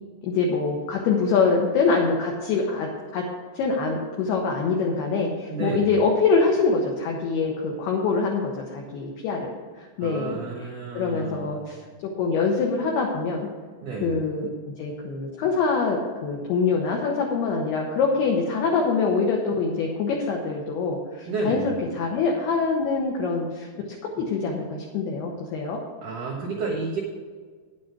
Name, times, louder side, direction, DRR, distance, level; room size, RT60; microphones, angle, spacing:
voice 1, 0.2-2.9 3.1-3.2 3.5-9.5 10.0-10.4 10.9-11.8 12.2-13.5 14.0-25.8, left 4 dB, 80° left, 0 dB, 2.4 m, -24 dB
voice 2, 5.5-5.9 10.0-11.5 13.8-14.2 21.3-21.7 26.0-27.0, right 3 dB, 80° right, -1 dB, 1.8 m, -30 dB
10.0 x 7.7 x 6.0 m, 1.5 s
omnidirectional pair, 5.9 m